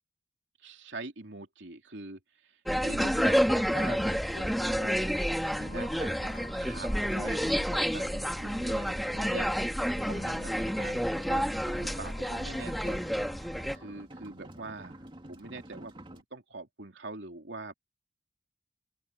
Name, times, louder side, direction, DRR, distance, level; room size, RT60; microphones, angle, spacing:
voice 1, 0.6-5.1 5.5-9.5 10.0-13.2 13.7-17.7, right 3 dB, 85° right, 2.9 m, -44 dB
sound 1, 2.7-13.8, equal, ahead, 1.9 m, -29 dB
sound 2, 3.0-16.2, right 1 dB, 25° right, 2.3 m, -49 dB
sound 3, 3.1-14.1, left 2 dB, 25° left, 4.6 m, -50 dB
open air
head